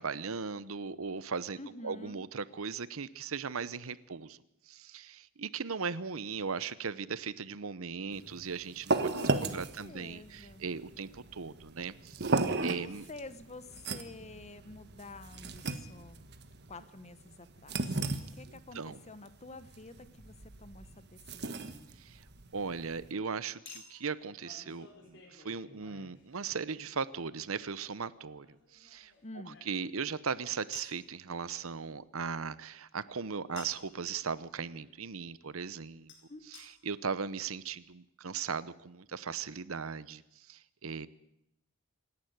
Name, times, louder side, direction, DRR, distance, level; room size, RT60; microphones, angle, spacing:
voice 1, 0.0-4.4 4.7-9.1 9.4-13.0 18.5-19.0 22.0-22.2 22.5-28.5 28.7-29.1 29.5-36.1 36.5-41.1, right 5 dB, 75° right, 17 dB, 0.9 m, -38 dB
voice 2, 1.6-2.2 9.1-10.6 12.8-16.2 16.7-17.8 18.3-21.9 29.2-29.6 36.3-36.4, left 2 dB, 30° left, 13 dB, 1.1 m, -49 dB
sound 1, 8.1-23.1, right 3 dB, 50° right, 1.6 m, -36 dB
Chink clink, 20.8-21.0 23.7-26.8 28.4-30.1 30.7-31.0 33.6-33.9 36.1-36.2 36.5-36.7 37.3-37.4 37.6-37.7, left 5 dB, 55° left, 4.8 m, -53 dB
26.5 x 11.5 x 9.5 m, 0.82 s
head